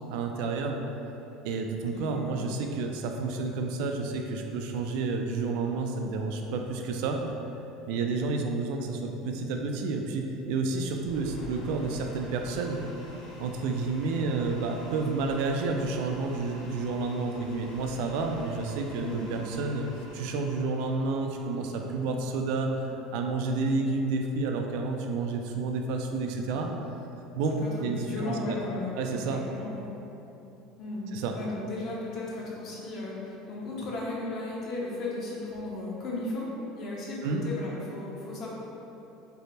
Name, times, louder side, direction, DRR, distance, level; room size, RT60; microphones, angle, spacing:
voice 1, 0.1-0.8 1.4-7.2 7.9-12.8 13.4-19.9 20.1-26.7 27.3-28.6 29.0-29.4 31.1-31.4 37.2-37.4, right 3 dB, 70° right, 3 dB, 0.3 m, -30 dB
voice 2, 1.9-2.3 19.0-19.2 27.5-29.8 30.8-36.5 36.8-38.5, left 2 dB, 40° left, -4 dB, 0.7 m, -36 dB
sound 1, 11.0-23.2, left 1 dB, 75° left, 1.1 m, -48 dB
3.3 x 2.0 x 4.1 m, 3.0 s
cardioid pair, 150°, 0 cm